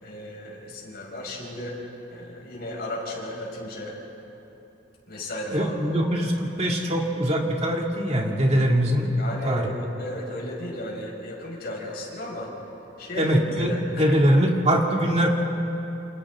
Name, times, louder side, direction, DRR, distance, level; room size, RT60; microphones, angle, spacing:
voice 1, 0.0-1.8 2.1-4.0 5.1-6.0 9.2-12.5 13.0-13.3 13.6-14.2, left 1 dB, 60° left, -2 dB, 5.3 m, -35 dB
voice 2, 5.5-9.1 9.4-9.7 13.2-15.3, equal, 35° right, 0 dB, 2.5 m, -22 dB
29.0 x 27.0 x 3.7 m, 2.9 s
head